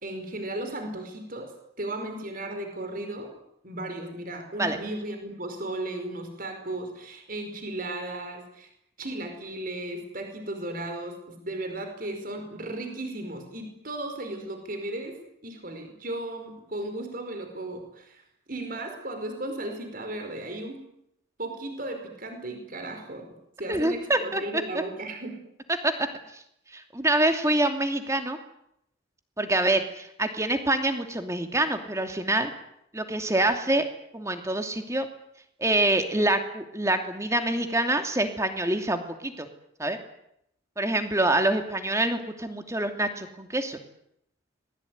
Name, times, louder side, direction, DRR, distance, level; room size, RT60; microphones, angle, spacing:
voice 1, 0.0-3.3 3.6-8.7 9.0-18.2 18.5-20.8 21.4-23.3 23.6-25.4, right 1 dB, 45° right, 5 dB, 5.2 m, -35 dB
voice 2, 23.7-24.4 25.7-25.9 26.3-26.4 26.7-28.4 29.4-32.5 32.9-33.8 34.1-35.1 35.6-39.5 39.8-40.0 40.8-43.8, right 1 dB, 15° right, 6 dB, 2.7 m, -26 dB
26.0 x 21.0 x 9.6 m, 0.77 s
head